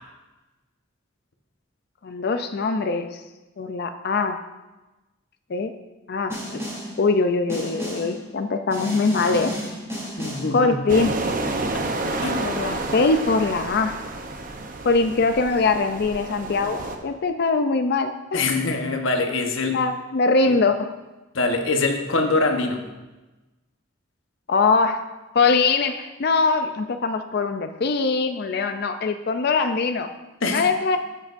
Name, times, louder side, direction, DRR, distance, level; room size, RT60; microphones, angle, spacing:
voice 1, 2.0-3.2 3.6-4.4 5.5-5.7 6.1-6.7 7.0-9.5 10.5-11.2 12.4-14.0 14.8-18.5 19.7-20.9 24.5-25.0 25.3-30.1 30.5-31.0, left 4 dB, 55° left, 8 dB, 0.4 m, -22 dB
Snare drum, 6.3-7.0 7.5-8.2 8.7-10.6, equal, 15° right, 3.2 m, -32 dB
voice 2, 10.2-10.8 11.7-11.9 12.2-12.4 18.3-19.8 20.5-20.6 21.3-22.8 30.4-30.7, left 3 dB, 80° left, 4 dB, 1.1 m, -24 dB
sound 1, 10.9-17.0, right 2 dB, 45° right, 0.8 m, -29 dB
14.0 x 7.5 x 2.6 m, 1.1 s
head